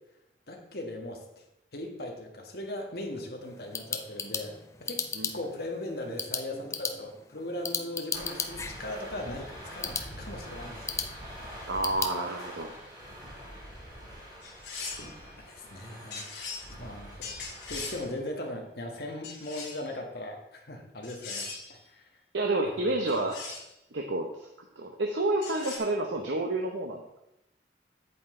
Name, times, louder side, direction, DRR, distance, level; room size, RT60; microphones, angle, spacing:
voice 1, 0.5-1.4 1.7-5.1 5.3-11.1 15.4-16.3 16.8-22.0, left 1 dB, 55° left, 2 dB, 1.5 m, -39 dB
sound 1, 3.4-12.2, left 5 dB, 15° left, 0.4 m, -37 dB
sound 2, 8.1-18.1, equal, 25° right, 2.9 m, -45 dB
voice 2, 11.7-12.7 22.3-23.4 23.9-24.5 24.8-27.2, right 2 dB, 90° right, 2 dB, 0.9 m, -29 dB
sound 3, 14.4-15.2 16.1-16.6 17.2-18.0 19.2-19.9 21.0-21.7 23.1-23.7 25.4-25.8, left 4 dB, 75° left, 2.6 m, -39 dB
8.4 x 7.9 x 3.8 m, 0.85 s
head